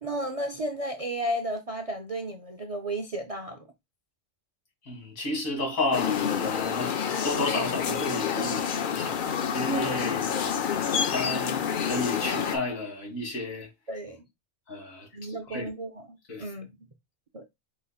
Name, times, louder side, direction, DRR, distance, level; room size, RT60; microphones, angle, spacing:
voice 1, 0.0-3.7 13.9-14.2 15.1-16.7 17.3-17.5, right 1 dB, 50° right, 0.4 m, -33 dB
voice 2, 4.8-7.0 7.2-10.4 10.7-13.7 14.7-15.7 16.3-16.5, left 2 dB, 80° left, 2.4 m, -32 dB
sound 1, 5.9-12.6, left 7 dB, 55° left, 0.6 m, -28 dB
4.9 x 4.0 x 2.3 m
omnidirectional pair, 1.4 m